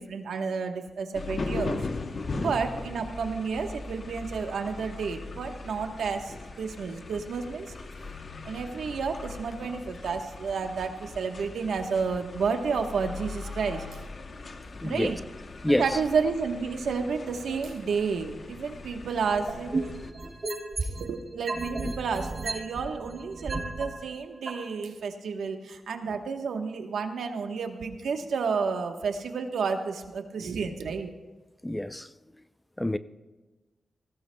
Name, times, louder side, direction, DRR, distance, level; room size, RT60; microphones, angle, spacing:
voice 1, 0.0-1.8 2.3-7.7 8.4-14.0 14.8-15.2 15.7-19.7 20.8-31.1, right 5 dB, 85° right, 1.1 m, -31 dB
sound 1, 1.1-20.1, left 3 dB, 55° left, 0.9 m, -39 dB
voice 2, 14.8-15.2 15.6-16.0 20.2-20.4 31.6-32.1 32.8-33.0, left 1 dB, 10° left, 0.4 m, -27 dB
sound 2, 19.5-21.1 21.4-23.8 24.5-24.6, right 3 dB, 40° right, 3.2 m, -32 dB
19.5 x 16.0 x 2.2 m
cardioid pair, 70°, 0 cm